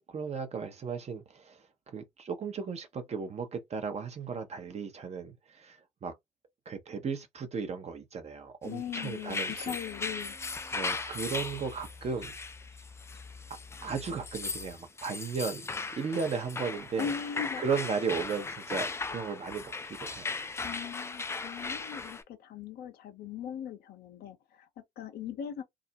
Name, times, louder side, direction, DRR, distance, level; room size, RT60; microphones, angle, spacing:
voice 1, 0.1-1.6 1.9-6.1 6.7-9.7 10.7-12.3 13.8-17.1 17.6-19.7 20.0-20.3, right 5 dB, 35° right, 0.7 m, -35 dB
voice 2, 8.6-10.4 17.0-17.6 20.6-24.7 25.0-25.6, left 8 dB, 55° left, 0.6 m, -39 dB
sound 1, 8.8-22.2, left 4 dB, 15° left, 0.4 m, -38 dB
sound 2, 9.5-14.8, left 3 dB, 5° right, 0.9 m, -51 dB
2.4 x 2.0 x 2.7 m
hypercardioid pair, 55°, 20 cm